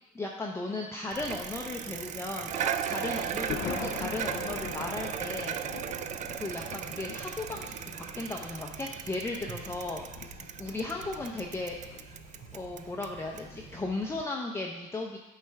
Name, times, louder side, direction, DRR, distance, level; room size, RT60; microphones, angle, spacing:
voice 1, 0.1-5.6 6.3-10.3 10.6-11.8 12.5-15.2, left 2 dB, 15° left, 0 dB, 0.6 m, -36 dB
Bicycle, 1.1-14.2, right 9 dB, 45° right, 0.4 m, -37 dB
Thunder, 2.3-13.8, left 10 dB, 85° left, 0.4 m, -44 dB
8.1 x 3.3 x 4.6 m, 1.1 s
cardioid pair, 110°, 17 cm